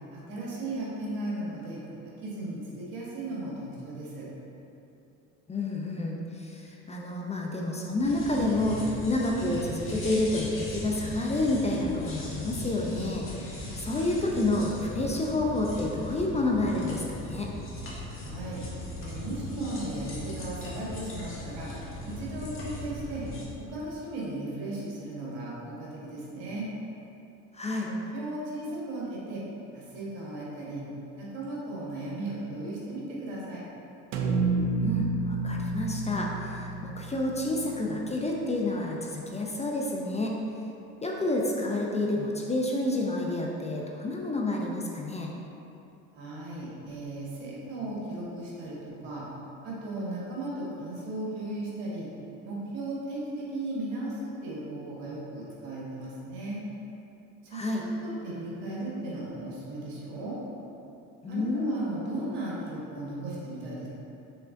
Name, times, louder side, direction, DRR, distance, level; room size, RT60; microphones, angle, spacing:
voice 1, 0.1-4.3 18.1-18.6 19.0-21.7 22.0-23.2 23.6-26.7 27.9-29.4 29.7-30.8 31.1-33.6 46.1-49.3 49.6-52.1 52.4-56.6 57.4-60.4 61.3-63.9, right 1 dB, 70° right, -6 dB, 1.4 m, -36 dB
voice 2, 5.5-17.5 27.5-27.9 34.8-40.4 41.0-45.3 57.5-57.8 61.2-61.8, left 2 dB, 20° left, -1 dB, 0.5 m, -29 dB
sound 1, 8.0-23.4, left 1 dB, 35° left, 1.3 m, -39 dB
sound 2, 34.1-38.3, right 3 dB, 90° right, 0.5 m, -30 dB
5.7 x 3.5 x 2.6 m, 2.8 s
supercardioid pair, 75°, 36 cm